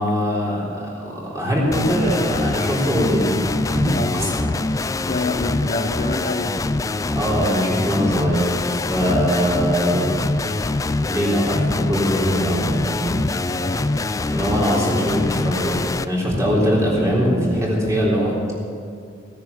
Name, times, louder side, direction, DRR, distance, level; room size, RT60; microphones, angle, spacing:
voice 1, 0.0-3.4 3.7-4.5 7.1-10.2 11.0-13.2 14.3-18.3, equal, 15° right, -5 dB, 3.8 m, -21 dB
sound 1, 1.7-16.0, left 2 dB, 15° left, 0.3 m, -24 dB
voice 2, 5.1-6.6 13.5-14.1, left 2 dB, 40° left, 5 dB, 0.7 m, -28 dB
17.5 x 10.5 x 7.3 m, 2.3 s
head